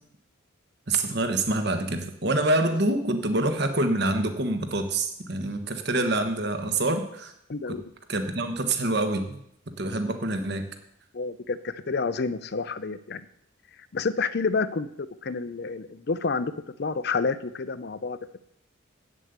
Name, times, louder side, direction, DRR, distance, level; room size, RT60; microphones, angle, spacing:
voice 1, 0.9-7.3 7.7-7.8 8.1-9.4 9.8-10.7, right 2 dB, 50° right, 7 dB, 1.3 m, -26 dB
voice 2, 7.5-7.9 11.1-13.2 13.9-14.9 15.2-18.4, left 4 dB, 50° left, 15 dB, 0.5 m, -29 dB
8.3 x 7.6 x 8.1 m, 0.75 s
head